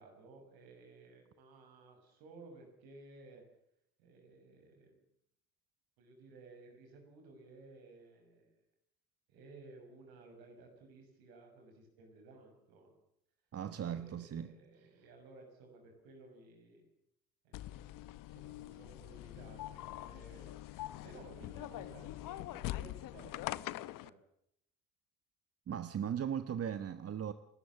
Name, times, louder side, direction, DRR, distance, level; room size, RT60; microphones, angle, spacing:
voice 1, 0.0-3.4 4.0-5.0 6.0-8.5 9.3-12.9 13.7-16.9 17.4-24.2, right 3 dB, 70° right, 6.4 m, -57 dB
voice 2, 13.5-14.5 25.7-27.3, right 9 dB, 40° right, 1.2 m, -38 dB
sound 1, 17.5-24.1, left 16 dB, 60° left, 0.8 m, -44 dB
29.0 x 13.0 x 7.3 m
hypercardioid pair, 65°, 38 cm